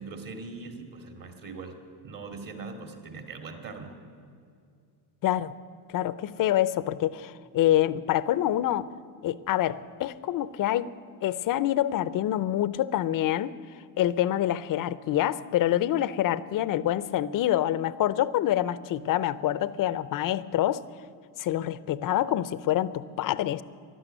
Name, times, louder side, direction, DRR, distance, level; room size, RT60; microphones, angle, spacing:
voice 1, 0.0-1.8 2.0-4.0, right 4 dB, 45° right, 5 dB, 2.5 m, -41 dB
voice 2, 5.2-5.5 5.9-8.9 9.2-10.9 11.2-13.5 14.0-20.8 21.4-23.6, left 12 dB, 45° left, 17 dB, 0.7 m, -26 dB
13.0 x 11.5 x 9.0 m, 2.3 s
supercardioid pair, 95°, 45 cm